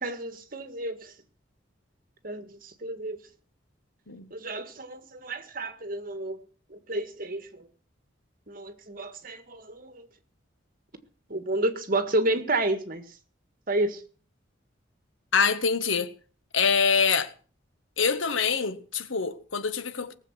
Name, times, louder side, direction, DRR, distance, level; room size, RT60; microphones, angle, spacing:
voice 1, 0.0-1.1 2.2-3.2 4.3-6.4 6.7-7.7 8.5-10.1 11.3-13.0 13.7-14.0, right 2 dB, 45° right, 1.8 m, -30 dB
voice 2, 15.3-16.1 16.5-17.3 18.0-20.1, left 5 dB, 85° left, 1.4 m, -25 dB
19.0 x 7.6 x 7.5 m
head